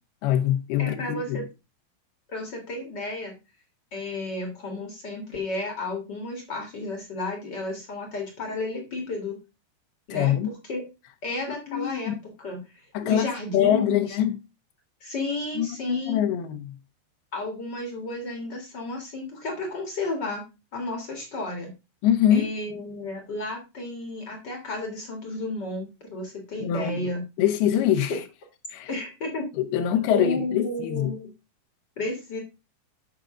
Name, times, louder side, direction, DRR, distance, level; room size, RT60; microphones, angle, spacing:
voice 1, 0.2-1.4 10.1-10.5 11.7-12.2 12.9-14.4 15.6-16.7 22.0-22.5 26.6-27.0 27.4-28.2 28.7-28.9 29.6-31.1, left 10 dB, 75° left, 2.8 m, -24 dB
voice 2, 0.8-1.4 2.3-3.3 3.9-9.4 10.1-10.4 10.7-10.8 11.2-12.1 12.4-14.2 15.0-16.2 17.3-20.4 20.7-21.7 22.3-27.2 28.1-28.2 28.9-29.5 30.1-31.3 32.0-32.4, left 2 dB, 45° left, 1.5 m, -32 dB
8.9 x 6.0 x 3.7 m
omnidirectional pair, 4.7 m